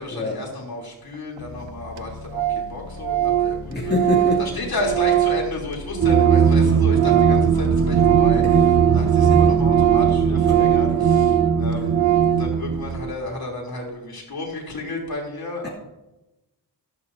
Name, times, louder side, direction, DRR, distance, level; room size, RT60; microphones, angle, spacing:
voice 1, 0.0-3.7 4.4-8.6 8.9-11.3 11.6-11.9 12.3-15.7, left 2 dB, 55° left, -2 dB, 3.3 m, -32 dB
sound 1, 1.4-9.6, left 6 dB, 85° left, 1.0 m, -39 dB
Organ, 1.4-1.5 1.7-1.8 2.0-2.1 2.3-2.7 3.0-6.6 6.9-12.5, right 14 dB, 85° right, 0.6 m, -21 dB
voice 2, 3.7-4.4 8.4-8.6 8.9-9.6 10.4-10.8 11.8-11.9 15.6-15.7, left 3 dB, 25° left, -6 dB, 2.6 m, -27 dB
sound 2, 6.0-13.1, right 5 dB, 35° right, 0.7 m, -20 dB
14.0 x 13.0 x 2.7 m, 0.99 s
wide cardioid pair, 115°, 44 cm